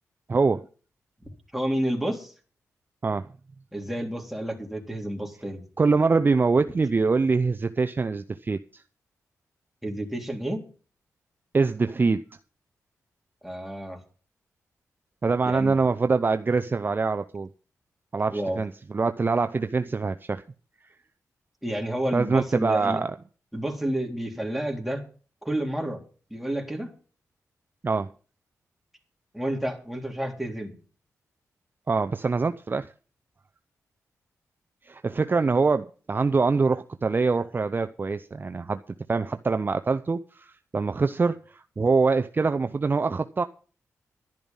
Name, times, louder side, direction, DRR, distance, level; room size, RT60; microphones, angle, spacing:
voice 1, 0.3-0.7 3.0-3.3 5.8-8.8 11.5-12.2 15.2-17.5 18.1-20.4 22.1-23.2 27.8-28.1 31.9-32.9 34.9-38.8 39.1-43.4, right 4 dB, 35° right, 0.6 m, -24 dB
voice 2, 1.5-2.3 3.7-5.6 9.8-10.6 13.4-14.0 15.4-15.8 18.3-18.6 21.6-23.0 23.5-25.0 25.4-26.0 26.3-26.9 29.3-30.8, right 1 dB, 5° right, 3.7 m, -30 dB
12.0 x 10.5 x 5.5 m
cardioid pair, 70°, 6 cm